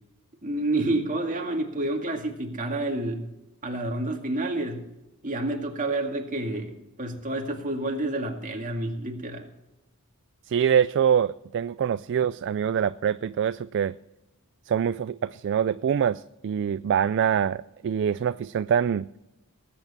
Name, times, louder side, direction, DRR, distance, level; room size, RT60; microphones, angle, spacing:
voice 1, 0.4-3.3 3.6-4.8 5.2-6.7 7.0-9.5, right 2 dB, 35° right, 2 dB, 2.1 m, -29 dB
voice 2, 10.5-13.9 14.7-19.1, right 8 dB, 55° right, 15 dB, 0.3 m, -24 dB
19.0 x 9.0 x 4.2 m, 0.94 s
head